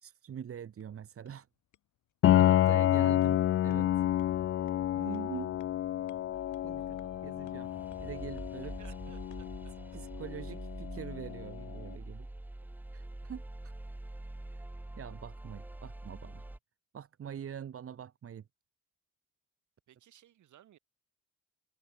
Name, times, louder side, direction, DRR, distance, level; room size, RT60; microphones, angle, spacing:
voice 1, 0.0-1.5 2.3-4.1 4.9-5.6 6.6-7.0 7.2-8.7 9.9-12.3 12.9-13.7 14.5-14.6 15.0-16.5 16.9-18.4, right 8 dB, 50° right, 1.3 m, -44 dB
sound 1, 0.5-9.6, left 11 dB, 75° left, 6.9 m, -68 dB
Piano, 2.2-11.8, left 12 dB, 45° left, 0.4 m, -29 dB
sound 2, 6.3-16.6, right 1 dB, 5° right, 0.6 m, -45 dB
voice 2, 6.7-7.5 8.6-9.7 19.9-20.8, right 11 dB, 75° right, 7.7 m, -60 dB
cardioid pair, 90°, 30 cm